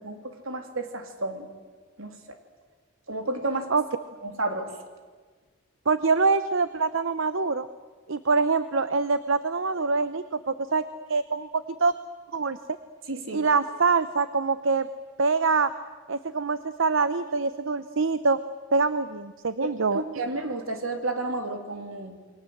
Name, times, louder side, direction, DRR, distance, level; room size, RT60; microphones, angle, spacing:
voice 1, 0.0-1.5 2.0-2.1 3.1-3.7 4.2-4.7 13.1-13.4 19.9-22.2, right 2 dB, 85° right, 5 dB, 3.3 m, -31 dB
voice 2, 5.9-7.7 8.1-11.5 11.8-11.9 12.3-12.6 13.3-14.9 15.2-15.7 16.1-18.4 18.7-20.0, right 4 dB, 70° right, 13 dB, 0.8 m, -24 dB
28.5 x 23.0 x 8.0 m, 1.5 s
head